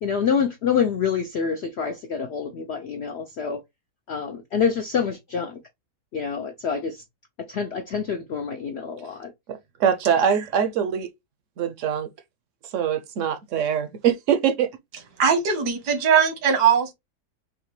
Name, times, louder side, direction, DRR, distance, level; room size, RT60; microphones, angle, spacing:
voice 1, 0.0-3.6 4.1-5.6 6.1-7.0 7.5-9.3, left 6 dB, 70° left, 0.6 m, -26 dB
voice 2, 9.5-11.1 11.6-12.1 12.7-14.7, right 8 dB, 65° right, 0.8 m, -23 dB
voice 3, 15.2-16.9, right 7 dB, 85° right, 1.6 m, -20 dB
5.7 x 2.2 x 3.1 m
omnidirectional pair, 1.7 m